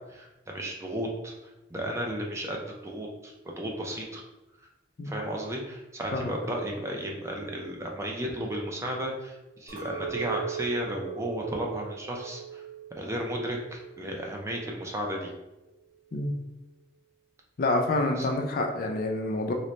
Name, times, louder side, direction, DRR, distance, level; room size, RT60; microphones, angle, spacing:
voice 1, 0.0-4.2 5.0-12.6 12.9-15.3 18.2-18.3, right 1 dB, 15° right, 0 dB, 0.4 m, -34 dB
Chink clink, 9.7-14.1 14.4-15.0, right 8 dB, 50° right, 1.3 m, -39 dB
voice 2, 17.6-19.5, left 2 dB, 50° left, 3 dB, 0.4 m, -27 dB
3.9 x 2.1 x 3.1 m, 1.0 s
head